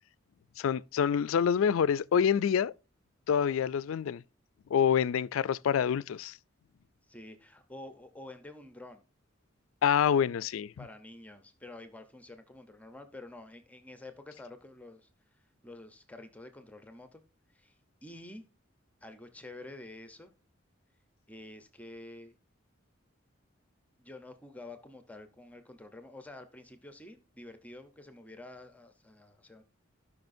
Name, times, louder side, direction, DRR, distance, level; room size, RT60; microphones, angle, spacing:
voice 1, 0.6-2.7 3.3-4.2 4.7-6.4 9.8-10.7, left 8 dB, 85° left, 0.3 m, -26 dB
voice 2, 7.1-9.0 10.4-15.1 15.6-17.2 17.5-18.4 19.0-20.3 21.3-22.4 24.0-29.6, left 2 dB, 5° left, 0.7 m, -49 dB
16.5 x 5.6 x 2.6 m
head